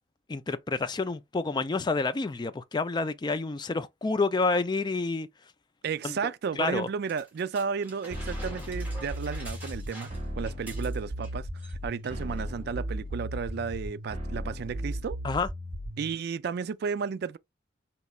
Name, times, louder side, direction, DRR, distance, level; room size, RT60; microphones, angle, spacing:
voice 1, 0.3-5.3 6.0-6.2 6.6-6.9 15.2-15.5, left 3 dB, 20° left, 0.3 m, -28 dB
voice 2, 5.8-10.1 10.4-15.2 16.0-17.4, right 6 dB, 55° right, 0.3 m, -33 dB
sound 1, 7.1-11.3 11.6-11.7 12.0-12.5 13.2-13.3, right 1 dB, 10° right, 2.3 m, -46 dB
sound 2, 8.1-16.1, equal, 35° right, 1.3 m, -36 dB
5.3 x 2.9 x 2.3 m
head